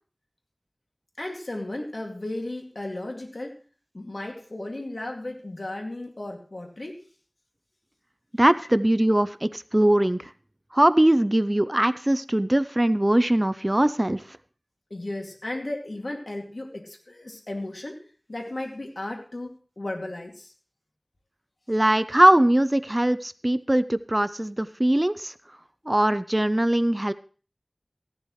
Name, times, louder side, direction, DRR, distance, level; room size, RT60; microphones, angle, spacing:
voice 1, 1.2-3.6 3.9-7.0 14.9-18.0 18.3-20.5, left 1 dB, 70° left, 1 dB, 2.4 m, -35 dB
voice 2, 8.4-10.2 10.7-14.2 21.7-25.3 25.9-27.1, right 1 dB, 25° right, 14 dB, 0.5 m, -21 dB
15.5 x 11.5 x 3.2 m, 0.39 s
wide cardioid pair, 45°, 0 cm